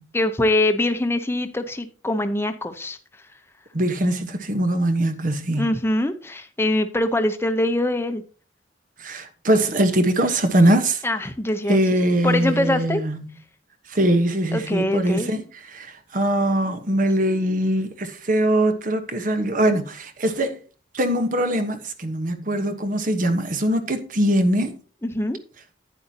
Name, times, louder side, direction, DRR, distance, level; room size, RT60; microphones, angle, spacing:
voice 1, 0.1-3.0 5.5-8.2 11.0-11.8 12.2-13.0 14.5-15.3 25.0-25.4, left 1 dB, 15° left, 0.8 m, -23 dB
voice 2, 3.7-5.6 9.0-11.0 11.7-13.3 13.9-20.6 20.9-24.8, right 1 dB, 45° right, 1.2 m, -22 dB
10.5 x 9.3 x 2.9 m
head